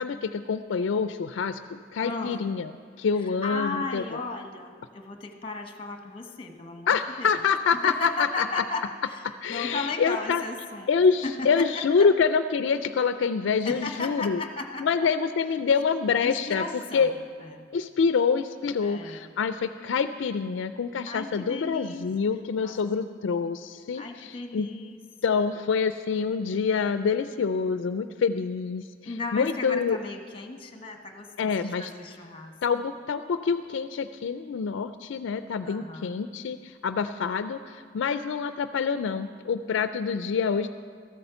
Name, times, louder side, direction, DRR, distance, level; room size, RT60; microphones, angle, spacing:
voice 1, 0.0-2.7 3.0-4.2 6.9-8.6 9.4-10.4 10.9-14.4 14.8-16.6 16.9-17.1 17.7-24.7 25.2-30.0 31.4-31.9 32.6-40.7, left 5 dB, 65° left, 11 dB, 0.4 m, -26 dB
voice 2, 2.0-2.4 3.1-9.2 9.5-10.9 11.2-12.1 13.6-15.2 16.2-17.7 18.8-19.3 21.1-22.1 22.6-22.8 23.9-25.0 25.3-25.5 29.0-32.5 35.6-36.2, left 3 dB, 30° left, 4 dB, 1.1 m, -36 dB
14.0 x 8.6 x 6.8 m, 2.1 s
head